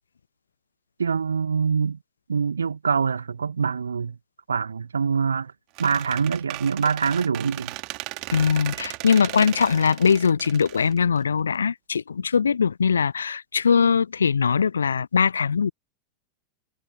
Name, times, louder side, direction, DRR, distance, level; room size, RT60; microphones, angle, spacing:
voice 1, 1.0-2.0 2.3-4.2 4.5-5.5 5.8-7.8, right 6 dB, 75° right, 1.8 m, -24 dB
Squeak, 5.8-11.6, right 28 dB, 45° right, 2.8 m, -36 dB
voice 2, 8.3-15.7, left 6 dB, 70° left, 0.6 m, -21 dB
figure-of-eight pair, 90°, 0 cm